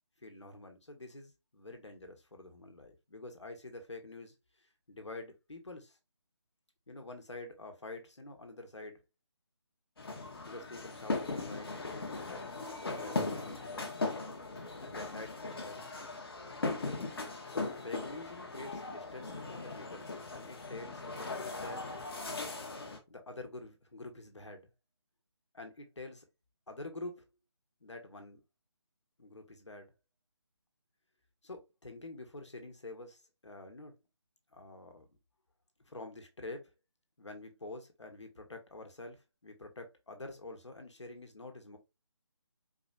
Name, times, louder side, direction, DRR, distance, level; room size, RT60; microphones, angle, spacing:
voice 1, 0.2-6.0 6.9-9.0 10.4-12.5 12.9-13.9 14.8-15.9 17.5-21.8 23.1-24.7 25.5-26.2 26.7-27.2 27.8-28.4 29.2-29.9 31.4-33.9 34.5-35.1 35.8-36.7 37.2-41.8, left 2 dB, 80° left, 1.6 m, -47 dB
sound 1, 10.0-23.0, left 3 dB, 55° left, 1.3 m, -39 dB
4.7 x 3.1 x 2.4 m
figure-of-eight pair, 155°, 15 cm